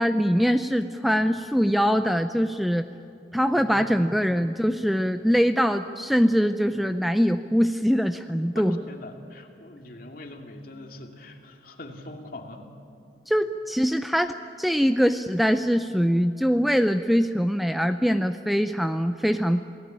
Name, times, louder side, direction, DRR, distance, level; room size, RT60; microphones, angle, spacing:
voice 1, 0.0-2.8 3.3-8.8 13.3-19.7, equal, ahead, 8 dB, 0.5 m, -23 dB
voice 2, 3.5-3.9 8.6-12.6, left 2 dB, 50° left, 3 dB, 2.7 m, -42 dB
28.0 x 17.5 x 8.8 m, 2.6 s
head